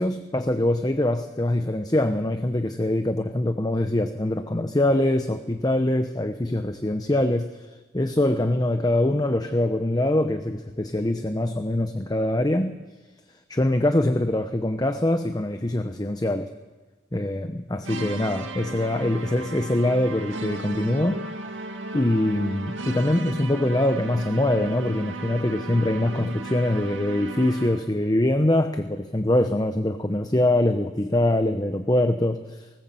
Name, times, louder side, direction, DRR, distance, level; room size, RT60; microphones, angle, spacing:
voice 1, 0.0-12.8 13.5-16.5 17.1-21.3 21.9-32.8, left 1 dB, 20° left, 8 dB, 0.9 m, -23 dB
sound 1, 17.8-28.0, right 2 dB, 90° right, 2.0 m, -35 dB
19.5 x 19.5 x 7.7 m, 1.2 s
head